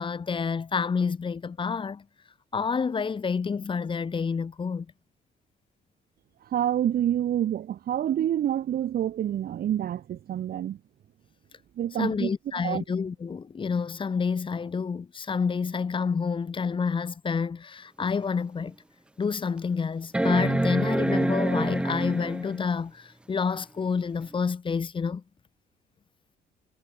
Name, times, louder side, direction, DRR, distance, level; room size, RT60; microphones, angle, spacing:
voice 1, 0.0-2.0 2.5-4.9 12.0-18.7 19.2-25.2, left 5 dB, 30° left, 5.0 m, -28 dB
voice 2, 6.4-10.8 11.8-12.3 12.6-12.8, right 11 dB, 60° right, 2.0 m, -27 dB
sound 1, 18.0-18.1 18.7-18.8 20.1-22.6 24.3-24.4, right 1 dB, 5° right, 0.6 m, -26 dB
cardioid pair, 165°, 18 cm